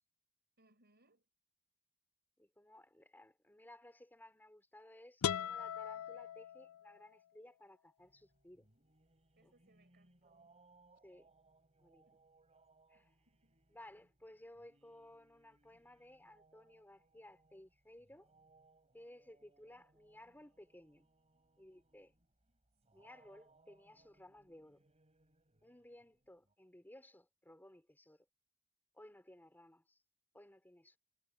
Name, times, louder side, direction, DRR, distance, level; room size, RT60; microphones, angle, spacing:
voice 1, 0.6-1.3 9.4-10.6 12.0-12.3 12.9-13.6, right 2 dB, 45° right, 6.4 m, -73 dB
voice 2, 2.4-8.7 9.4-9.5 11.0-11.3 11.8-12.1 12.9-13.1 13.7-18.3 18.9-21.1 21.6-22.1 22.9-24.8 25.6-28.3 28.9-30.0 30.3-31.0, left 1 dB, 10° left, 4.1 m, -58 dB
sound 1, 5.2-7.1, left 8 dB, 65° left, 0.4 m, -39 dB
sound 2, 8.0-26.5, right 3 dB, 30° right, 4.2 m, -71 dB
head